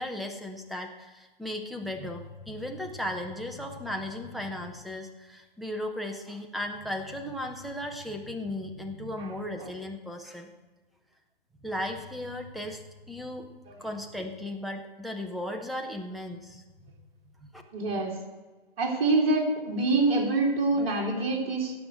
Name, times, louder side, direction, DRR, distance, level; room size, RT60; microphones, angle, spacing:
voice 1, 0.0-10.5 11.6-13.5 13.8-16.6 17.4-17.6, left 1 dB, ahead, 2 dB, 0.5 m, -36 dB
voice 2, 17.7-18.1 18.8-21.7, right 3 dB, 35° right, -4 dB, 2.9 m, -25 dB
17.0 x 6.0 x 6.6 m, 1.2 s
figure-of-eight pair, 130°, 30 cm